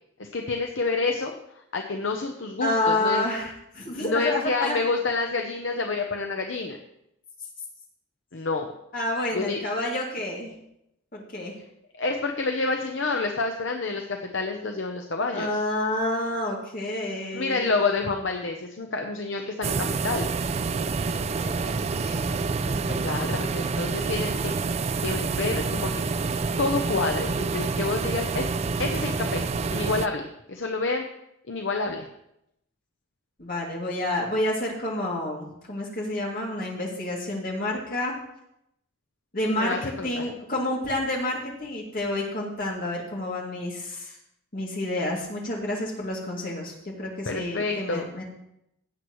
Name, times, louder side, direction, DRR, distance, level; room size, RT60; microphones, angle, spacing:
voice 1, 0.2-3.3 4.0-6.8 8.3-8.7 9.3-9.6 12.0-15.5 17.3-20.3 23.0-26.0 26.6-28.5 28.8-31.1 31.5-32.1 39.5-40.3 47.3-48.1, left 3 dB, 60° left, 3 dB, 0.8 m, -28 dB
voice 2, 2.6-4.8 8.9-10.5 11.1-11.5 15.3-17.7 21.1-23.0 33.4-38.1 39.3-39.8 40.0-44.2 44.5-48.2, left 1 dB, 45° left, -2 dB, 2.6 m, -29 dB
sound 1, 19.6-30.1, right 4 dB, 30° right, 0.3 m, -28 dB
16.5 x 7.9 x 3.1 m, 0.79 s
head